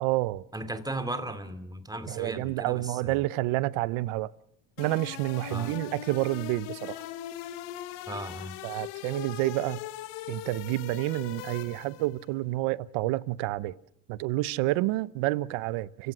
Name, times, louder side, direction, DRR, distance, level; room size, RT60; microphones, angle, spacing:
voice 1, 0.0-0.4 2.1-4.3 4.8-7.0 8.6-9.8 10.3-13.7 14.1-16.1, right 18 dB, 75° right, 0.9 m, -29 dB
voice 2, 0.5-3.2 5.5-5.7 8.1-8.6, right 1 dB, 10° right, 2.6 m, -36 dB
sound 1, 4.8-12.2, left 13 dB, 80° left, 1.6 m, -40 dB
30.0 x 16.5 x 6.2 m
supercardioid pair, 90°, 50 cm